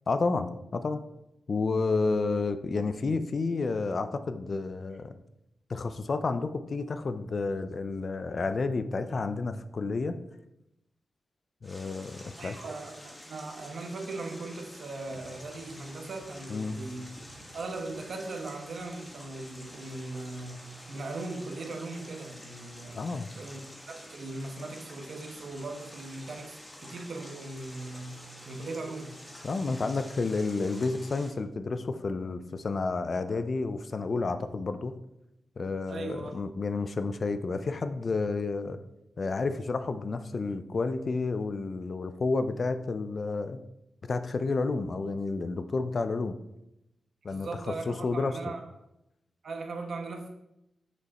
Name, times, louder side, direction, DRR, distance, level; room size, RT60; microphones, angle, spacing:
voice 1, 0.1-1.0 1.5-5.1 5.7-10.1 11.6-12.6 16.5-16.8 22.9-23.3 29.4-34.9 35.6-38.8 39.2-43.6 44.0-46.4 47.2-48.4, left 3 dB, 50° left, 10 dB, 0.5 m, -30 dB
sound 1, 11.6-31.3, left 1 dB, 15° left, 1.9 m, -48 dB
voice 2, 12.4-17.1 17.5-23.0 23.4-23.6 23.9-29.2 35.9-36.4 47.3-48.6 49.4-50.3, right 3 dB, 70° right, 4 dB, 1.1 m, -39 dB
6.5 x 5.3 x 4.1 m, 0.86 s
cardioid pair, 80°, 0 cm